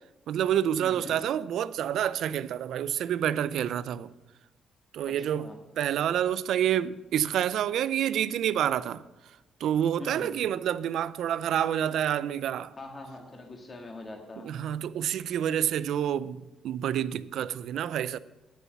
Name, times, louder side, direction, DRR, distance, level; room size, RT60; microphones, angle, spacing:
voice 1, 0.3-4.1 4.9-5.5 5.8-9.0 9.6-12.7 14.4-18.2, right 10 dB, 75° right, 0.4 m, -28 dB
voice 2, 0.8-1.2 5.0-5.6 10.0-10.3 12.8-14.5, left 2 dB, 30° left, 1.8 m, -43 dB
9.3 x 6.9 x 6.8 m
cardioid pair, 90°, 0 cm